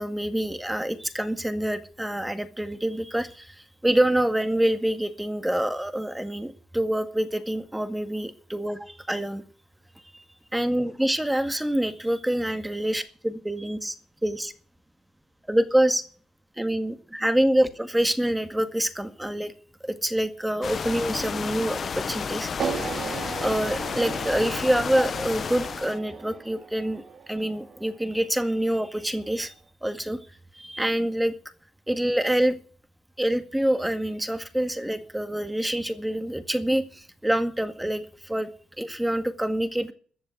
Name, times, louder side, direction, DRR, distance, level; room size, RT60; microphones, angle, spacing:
voice 1, 0.0-9.4 10.1-10.2 10.5-14.0 14.2-14.5 15.5-16.0 16.6-19.5 19.8-22.9 23.4-29.5 29.8-30.2 30.5-31.3 31.9-32.6 33.2-38.5 38.8-39.9, right 1 dB, 5° right, 10 dB, 1.8 m, -26 dB
sound 1, 20.6-26.0, left 6 dB, 45° left, 0.9 m, -32 dB
sound 2, 22.6-28.8, right 5 dB, 55° right, 2.8 m, -36 dB
14.0 x 7.4 x 9.4 m, 0.44 s
cardioid pair, 90°, 0 cm